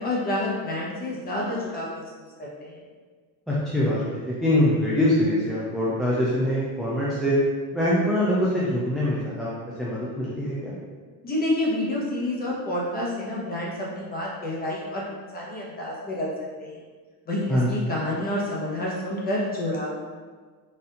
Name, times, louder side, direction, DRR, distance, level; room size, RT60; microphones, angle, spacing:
voice 1, 0.0-2.1 2.4-2.8 11.2-16.3 16.6-16.8 17.3-19.9, left 1 dB, 25° left, -5 dB, 1.0 m, -28 dB
voice 2, 3.5-7.3 7.7-9.5 9.8-10.7 17.5-17.9, left 1 dB, ahead, -8 dB, 0.4 m, -24 dB
4.3 x 2.6 x 3.8 m, 1.5 s
cardioid pair, 150°, 40 cm